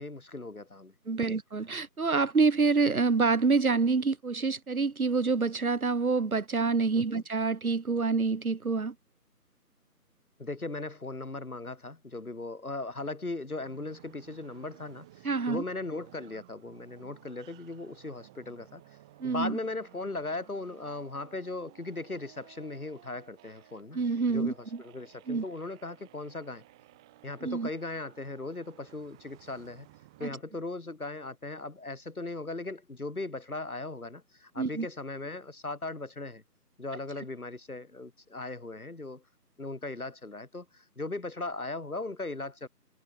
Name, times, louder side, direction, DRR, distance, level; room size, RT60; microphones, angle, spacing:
voice 1, 0.0-1.3 7.0-7.2 10.4-18.8 19.2-24.0 24.3-26.6 27.2-29.9 30.2-36.4 36.8-39.2 39.6-42.7, left 2 dB, 60° left, 5.8 m, -38 dB
voice 2, 1.1-8.9 15.2-15.6 19.2-19.6 23.9-24.8 25.3-25.4 27.4-27.7 30.2-30.3 34.6-34.9, right 4 dB, 60° right, 1.0 m, -27 dB
sound 1, 13.5-30.4, right 18 dB, 5° right, 3.6 m, -57 dB
figure-of-eight pair, 175°, 48 cm